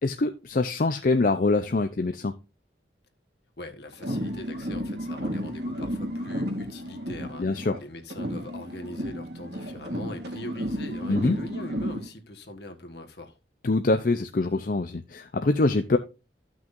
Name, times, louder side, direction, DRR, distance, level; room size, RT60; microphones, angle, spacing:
voice 1, 0.0-2.3 7.2-7.8 11.1-11.4 13.6-16.0, left 2 dB, 50° left, 0.5 m, -24 dB
voice 2, 3.6-13.4, left 1 dB, 65° left, 1.5 m, -41 dB
sound 1, 3.9-7.8 8.1-12.1, equal, 70° right, 2.7 m, -33 dB
13.5 x 6.1 x 2.6 m
head